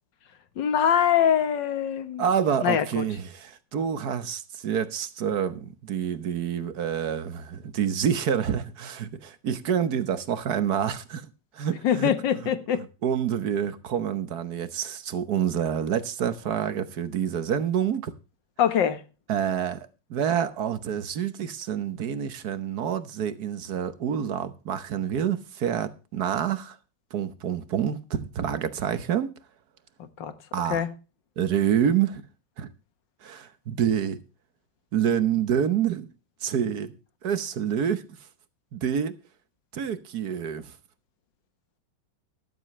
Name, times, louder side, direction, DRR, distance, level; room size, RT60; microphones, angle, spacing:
voice 1, 0.6-2.2 2.6-3.0 11.8-12.8 18.6-19.0 30.2-30.3 30.7-30.9, left 9 dB, 80° left, 1.9 m, -23 dB
voice 2, 2.2-12.1 13.0-18.1 19.3-26.8 27.1-29.3 30.5-30.8 31.4-32.2 32.6-32.7 33.2-34.2 34.9-36.1 36.4-36.9 37.2-38.0 38.7-39.1 39.7-40.8, right 8 dB, 60° right, 1.5 m, -27 dB
12.5 x 12.5 x 3.2 m
omnidirectional pair, 1.9 m